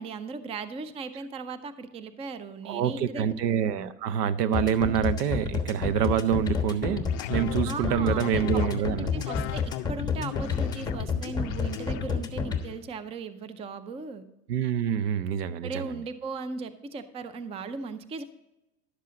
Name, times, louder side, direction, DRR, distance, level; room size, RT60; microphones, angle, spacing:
voice 1, 0.0-3.3 3.7-3.9 7.7-8.7 9.0-14.3 15.6-18.2, right 4 dB, 15° right, 12 dB, 0.4 m, -37 dB
voice 2, 2.6-9.1 14.5-16.0, right 9 dB, 75° right, 15 dB, 0.8 m, -26 dB
sound 1, 4.5-12.6, left 6 dB, 10° left, 1.2 m, -29 dB
sound 2, 6.4-12.8, left 14 dB, 40° left, 0.5 m, -38 dB
11.5 x 7.4 x 3.8 m, 0.94 s
hypercardioid pair, 105°, 48 cm